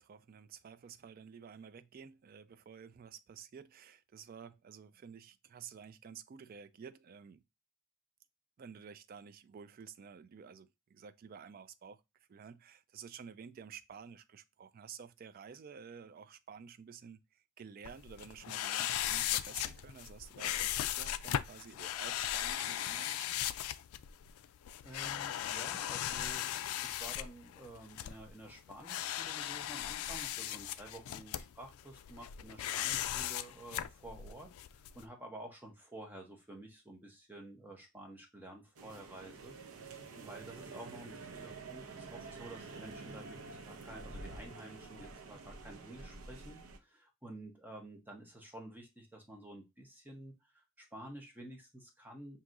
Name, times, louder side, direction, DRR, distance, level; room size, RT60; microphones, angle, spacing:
voice 1, 0.0-7.4 8.6-12.0 12.3-23.3, right 6 dB, 45° right, 0.3 m, -52 dB
sound 1, 17.8-35.0, left 12 dB, 85° left, 0.3 m, -38 dB
voice 2, 24.8-50.3 50.8-52.4, right 1 dB, 10° right, 0.8 m, -51 dB
sound 2, 38.8-46.8, right 3 dB, 75° right, 0.7 m, -48 dB
5.9 x 2.8 x 2.5 m
head